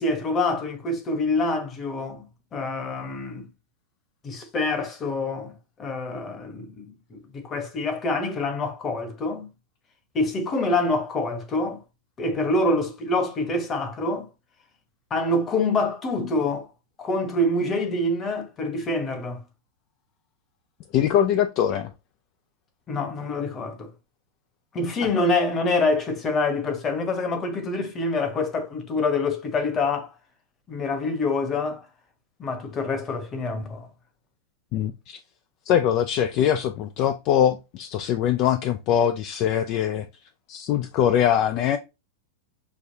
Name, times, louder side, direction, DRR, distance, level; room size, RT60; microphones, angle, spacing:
voice 1, 0.0-2.2 2.5-3.5 4.2-9.5 10.1-11.8 12.2-14.3 15.1-16.7 17.0-19.4 22.9-23.9 24.7-30.1 30.7-31.9 32.4-33.9, left 2 dB, 25° left, 1.0 m, -26 dB
voice 2, 20.9-21.9 34.7-35.2 35.7-40.1 40.5-41.8, left 10 dB, 40° left, 0.3 m, -22 dB
6.4 x 2.3 x 2.7 m
supercardioid pair, 140°, 0 cm